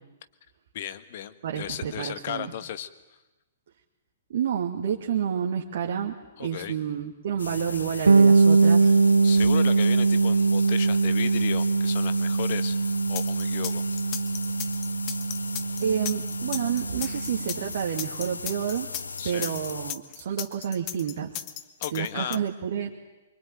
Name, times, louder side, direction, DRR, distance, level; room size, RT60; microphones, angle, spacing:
voice 1, 0.7-2.9 6.4-6.8 9.2-12.8 13.1-13.8 19.2-19.5 21.8-22.4, left 11 dB, 45° left, 13 dB, 1.6 m, -35 dB
voice 2, 1.4-2.5 4.3-6.1 6.4-8.9 15.8-18.9 19.2-21.3 21.9-22.9, right 8 dB, 55° right, 1 dB, 2.4 m, -29 dB
sound 1, 7.4-19.9, left 4 dB, 75° left, 0.9 m, -37 dB
Bass guitar, 8.1-17.7, right 4 dB, 70° right, 1.4 m, -22 dB
sound 2, 13.1-22.4, left 12 dB, 30° left, 1.5 m, -35 dB
25.0 x 24.5 x 9.1 m, 1.1 s
figure-of-eight pair, 115°, 0 cm